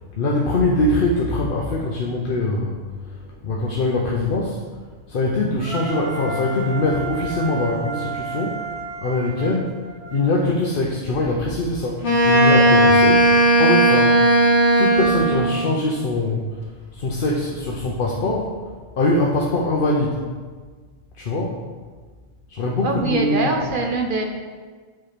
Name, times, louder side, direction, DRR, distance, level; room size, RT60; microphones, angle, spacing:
voice 1, 0.2-4.6 5.1-8.6 9.0-9.8 10.1-14.2 14.8-16.5 16.9-18.5 19.0-20.2 21.2-21.6 22.5-23.6, left 2 dB, 55° left, -2 dB, 0.9 m, -22 dB
Wind instrument woodwind instrument, 5.6-10.4, right 4 dB, 85° right, 2.2 m, -32 dB
Wind instrument woodwind instrument 2, 12.0-15.6, right 1 dB, 70° left, 1.8 m, -15 dB
voice 2, 22.8-24.2, right 3 dB, 50° right, 2 dB, 0.8 m, -23 dB
7.8 x 4.4 x 5.0 m, 1.5 s
omnidirectional pair, 1.2 m